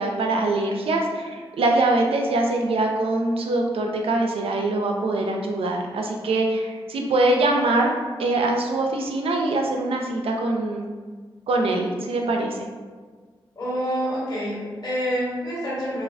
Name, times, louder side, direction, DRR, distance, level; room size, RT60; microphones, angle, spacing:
voice 1, 0.0-7.9 8.2-10.9 11.5-12.6, right 2 dB, 70° right, 2 dB, 0.4 m, -23 dB
voice 2, 13.5-16.0, equal, 40° left, -9 dB, 1.4 m, -27 dB
2.3 x 2.3 x 2.3 m, 1.5 s
supercardioid pair, 40°, 10 cm